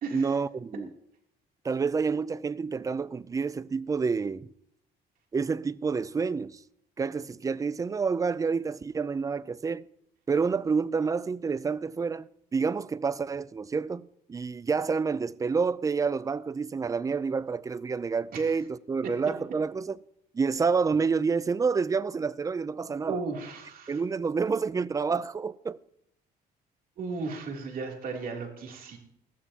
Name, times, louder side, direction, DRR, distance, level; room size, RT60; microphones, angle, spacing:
voice 1, 0.1-0.9 1.6-4.5 5.3-6.6 7.0-9.8 10.3-20.0 20.3-23.2 23.9-25.8, right 5 dB, 20° right, 0.4 m, -28 dB
voice 2, 23.1-24.0 27.0-29.0, right 4 dB, 60° right, 3.0 m, -35 dB
20.5 x 14.5 x 2.9 m
cardioid pair, 110°, 17 cm